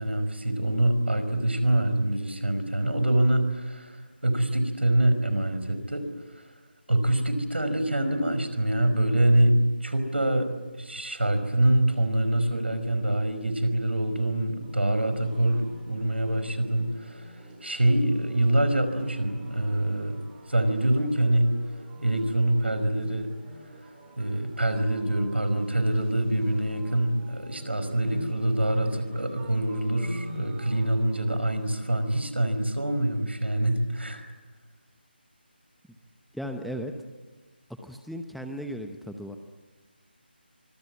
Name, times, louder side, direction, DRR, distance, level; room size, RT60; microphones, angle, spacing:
voice 1, 0.0-6.1 6.3-6.5 6.9-20.2 20.5-21.5 22.0-23.3 24.2-34.3, right 1 dB, 90° right, 9 dB, 5.3 m, -25 dB
sound 1, 14.6-32.5, equal, 15° right, 4.8 m, -47 dB
voice 2, 36.3-36.9 37.8-39.4, equal, ahead, 5 dB, 0.9 m, -36 dB
25.0 x 22.0 x 9.8 m, 1.3 s
figure-of-eight pair, 160°, 6 cm